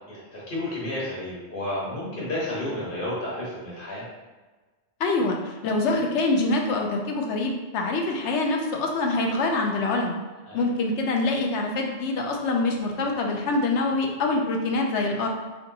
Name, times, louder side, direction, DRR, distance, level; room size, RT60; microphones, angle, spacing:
voice 1, 0.1-4.0 10.5-10.6, left 1 dB, 50° left, -7 dB, 1.4 m, -31 dB
voice 2, 5.0-10.2 10.5-15.3, left 2 dB, 75° left, 1 dB, 0.9 m, -25 dB
3.4 x 2.8 x 3.9 m, 1.3 s
omnidirectional pair, 1.2 m